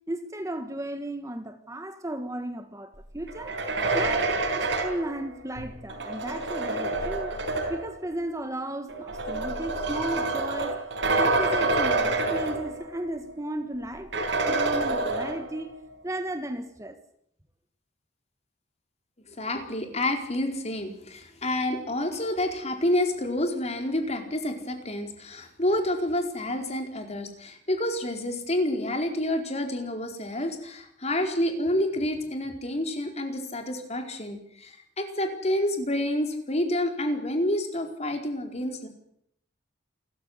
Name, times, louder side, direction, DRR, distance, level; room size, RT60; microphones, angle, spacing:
voice 1, 0.1-3.6 3.9-7.3 7.7-10.8 11.2-15.7 16.0-17.0, right 1 dB, 15° right, 1.5 m, -35 dB
sound 1, 3.3-8.0 8.9-13.1 13.4-13.5 14.1-15.7, right 2 dB, 70° right, 5.0 m, -27 dB
voice 2, 19.3-38.9, left 1 dB, 35° left, 4.5 m, -28 dB
28.0 x 14.5 x 8.1 m
head